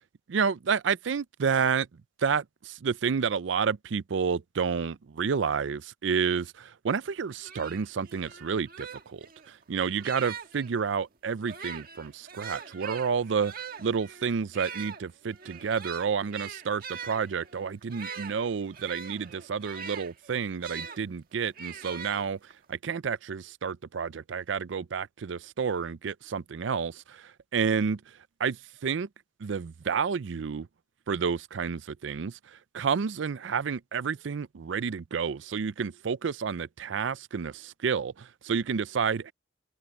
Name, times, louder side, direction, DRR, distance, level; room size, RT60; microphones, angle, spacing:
voice 1, 0.3-1.9 2.2-22.4 22.7-28.0 28.4-28.6 28.8-29.1 29.4-30.7 31.1-39.3, right 6 dB, 70° right, 0.5 m, -30 dB
sound 1, 7.1-7.2 7.4-10.7 11.4-21.0 21.6-22.7, right 6 dB, 50° right, 1.5 m, -42 dB
open air
head